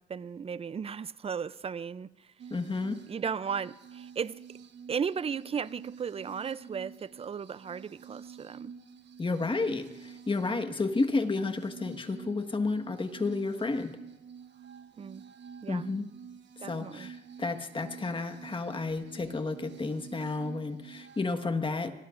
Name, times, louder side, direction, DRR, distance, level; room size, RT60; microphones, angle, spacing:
voice 1, 0.0-2.3 3.1-4.4 4.9-8.7 15.0-15.2 15.6-15.9 16.6-17.1, right 6 dB, 30° right, 0.5 m, -35 dB
sound 1, 2.4-21.3, right 7 dB, 60° right, 1.2 m, -49 dB
voice 2, 2.5-3.0 9.2-13.9 15.7-16.1 16.6-21.9, left 3 dB, 25° left, 1.5 m, -31 dB
26.0 x 20.5 x 2.6 m
cardioid pair, 90°, 20 cm